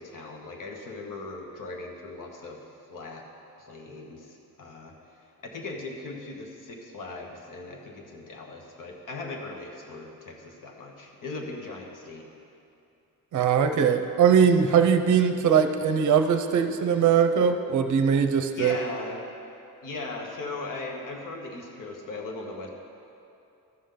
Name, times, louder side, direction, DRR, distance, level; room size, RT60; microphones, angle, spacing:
voice 1, 0.0-2.6 2.9-3.2 3.6-4.9 5.4-12.2 18.5-19.2 19.8-22.7, left 3 dB, 60° left, 1 dB, 1.3 m, -38 dB
voice 2, 13.3-18.8, right 7 dB, 55° right, 7 dB, 0.6 m, -21 dB
13.5 x 7.0 x 3.9 m, 2.7 s
wide cardioid pair, 170°, 36 cm